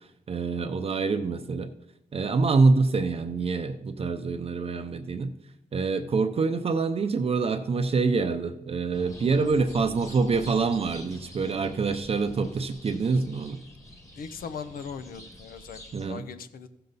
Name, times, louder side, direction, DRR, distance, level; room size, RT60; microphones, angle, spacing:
voice 1, 0.3-1.7 2.1-5.3 5.7-13.6 15.9-16.2, right 4 dB, 45° right, 8 dB, 0.5 m, -26 dB
sound 1, 8.9-16.1, left 1 dB, 20° left, 1.4 m, -47 dB
voice 2, 14.2-15.8 16.1-16.7, left 6 dB, 85° left, 11 dB, 0.7 m, -39 dB
15.0 x 6.7 x 4.0 m, 0.89 s
wide cardioid pair, 115°, 15 cm